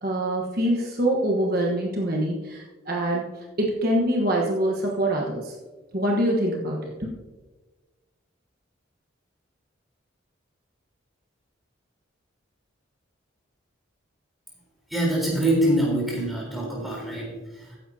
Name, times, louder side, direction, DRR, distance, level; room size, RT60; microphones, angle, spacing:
voice 1, 0.0-5.5 5.9-7.1, right 1 dB, 50° right, -1 dB, 1.2 m, -25 dB
voice 2, 14.9-17.8, right 1 dB, ahead, -4 dB, 3.8 m, -25 dB
14.5 x 10.0 x 2.8 m, 1.3 s
head